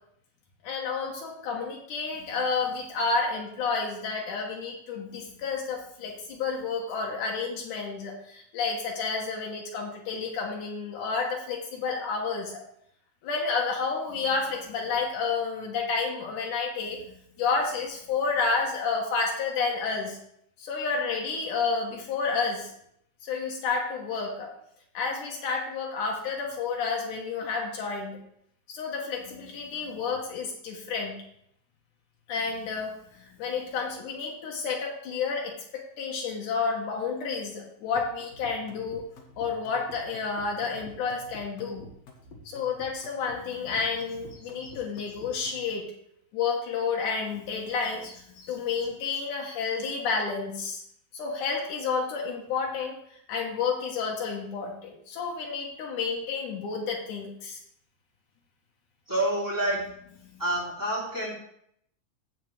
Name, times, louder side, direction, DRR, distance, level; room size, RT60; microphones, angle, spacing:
voice 1, 0.6-12.6 13.2-20.2 20.6-22.7 23.2-24.5 24.9-28.2 28.7-31.2 32.3-39.1 39.4-41.8 42.5-45.9 46.3-50.8 51.1-57.6 60.2-60.4, left 5 dB, 80° left, 0 dB, 2.7 m, -30 dB
sound 1, 37.9-45.7, left 3 dB, 60° left, 2.5 m, -48 dB
voice 2, 59.1-59.8 60.4-61.3, right 1 dB, 5° right, -6 dB, 3.1 m, -27 dB
15.5 x 5.8 x 3.3 m, 0.71 s
omnidirectional pair, 3.6 m